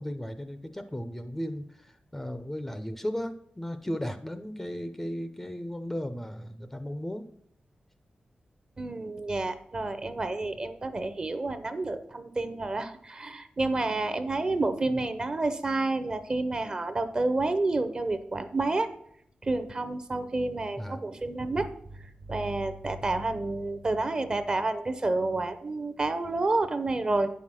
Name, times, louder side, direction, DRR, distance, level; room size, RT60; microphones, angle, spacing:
voice 1, 0.0-7.3 14.9-15.0 20.8-21.0, equal, 10° left, 9 dB, 0.5 m, -35 dB
voice 2, 8.8-18.9 19.4-21.7 22.0-27.3, right 2 dB, 30° right, 11 dB, 0.7 m, -29 dB
9.4 x 5.7 x 6.2 m, 0.68 s
wide cardioid pair, 170°, 3 cm